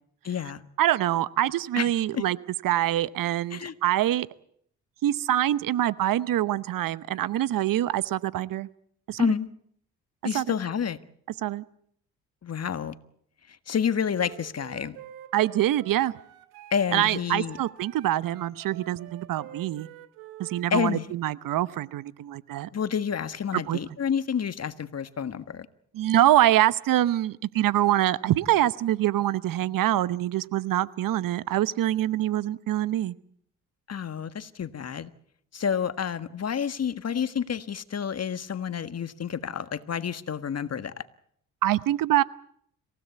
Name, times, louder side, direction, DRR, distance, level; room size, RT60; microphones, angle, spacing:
voice 1, 0.2-0.7 1.8-2.2 3.5-3.7 9.2-9.5 10.2-11.0 12.4-12.9 13.5-15.0 16.7-17.6 20.7-21.1 22.7-25.7 33.9-35.1 35.5-41.0, left 7 dB, 45° left, 1.6 m, -29 dB
voice 2, 0.8-2.4 2.6-4.3 5.0-8.7 9.1-9.3 10.3-10.4 11.4-11.6 15.3-16.1 16.9-19.9 20.4-22.7 23.5-23.8 25.9-33.1 41.6-42.2, right 13 dB, 65° right, 0.9 m, -25 dB
Wind instrument woodwind instrument, 14.2-20.7, right 11 dB, 85° right, 2.3 m, -47 dB
27.0 x 16.5 x 8.3 m
hypercardioid pair, 55°, 36 cm